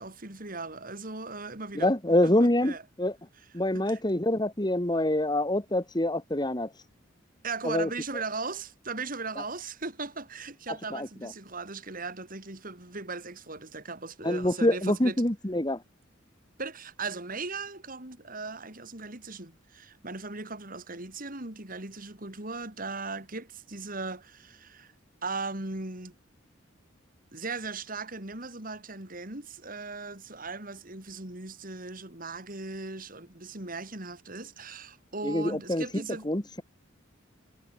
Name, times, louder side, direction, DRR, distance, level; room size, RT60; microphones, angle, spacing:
voice 1, 0.0-1.9 2.2-2.8 3.7-4.0 7.4-15.2 16.6-24.9 25.2-26.1 27.3-36.3, right 3 dB, 45° right, 3.9 m, -38 dB
voice 2, 1.7-3.1 3.5-6.7 7.6-7.9 9.4-9.5 10.9-11.3 14.2-15.8 35.2-36.6, left 1 dB, 20° left, 2.0 m, -26 dB
head